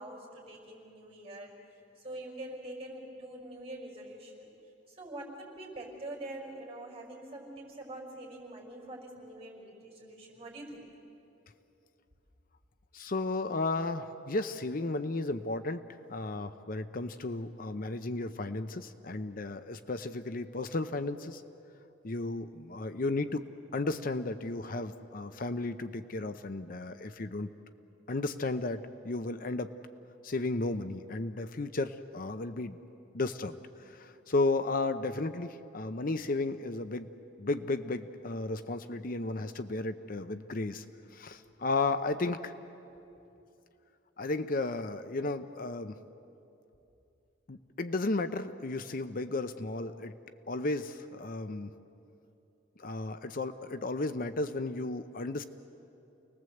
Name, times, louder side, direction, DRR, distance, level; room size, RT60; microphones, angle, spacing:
voice 1, 0.0-1.5 2.0-4.5 4.9-10.9, right 1 dB, 35° right, 0 dB, 5.5 m, -44 dB
voice 2, 12.9-15.8 16.1-21.4 22.0-23.4 23.7-27.5 28.1-29.7 30.2-32.8 33.1-33.6 33.9-37.1 37.4-40.8 41.1-42.5 44.2-46.0 47.5-50.2 50.5-51.7 52.8-55.4, left 2 dB, 50° left, 10 dB, 0.7 m, -34 dB
29.0 x 20.0 x 7.9 m, 2.8 s
head